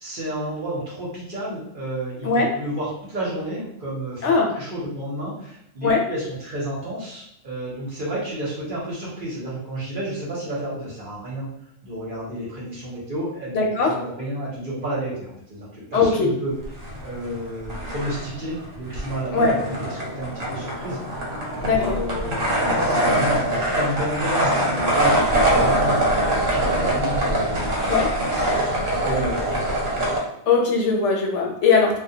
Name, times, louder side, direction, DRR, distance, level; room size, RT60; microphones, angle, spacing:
voice 1, 0.0-11.5 11.8-16.5 17.0-21.3 21.7-26.2 26.5-27.9 28.7-29.8, right 1 dB, 45° right, -6 dB, 0.8 m, -31 dB
voice 2, 13.5-13.9 15.9-16.3 19.3-19.5 21.6-22.0 27.9-28.1 30.5-32.0, left 4 dB, 70° left, 0 dB, 0.9 m, -19 dB
sound 1, 16.6-17.4 17.7-30.2, right 1 dB, 85° right, 1.1 m, -23 dB
2.2 x 2.1 x 2.7 m, 0.78 s
omnidirectional pair, 1.3 m